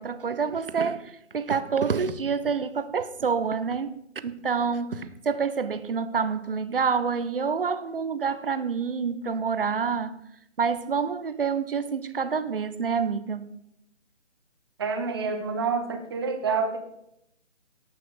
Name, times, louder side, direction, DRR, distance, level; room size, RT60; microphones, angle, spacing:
voice 1, 0.0-10.1 10.6-13.6, right 5 dB, 50° right, 12 dB, 0.9 m, -27 dB
voice 2, 14.8-16.8, right 5 dB, 20° right, 5 dB, 1.1 m, -28 dB
17.5 x 5.9 x 4.8 m, 0.80 s
figure-of-eight pair, 150°, 36 cm